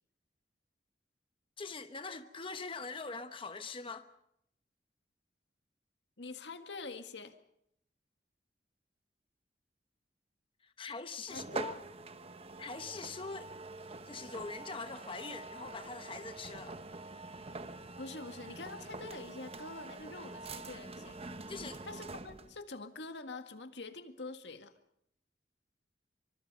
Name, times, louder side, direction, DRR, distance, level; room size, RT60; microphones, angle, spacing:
voice 1, 1.6-4.1 10.6-11.8 12.6-13.5 14.0-16.8 21.5-21.8, left 4 dB, 30° left, 1.1 m, -43 dB
voice 2, 6.2-7.4 11.2-11.8 18.0-21.2 21.8-24.7, left 3 dB, 80° left, 1.9 m, -46 dB
sound 1, 11.3-22.6, right 3 dB, 35° right, 1.1 m, -45 dB
26.0 x 25.0 x 5.4 m
head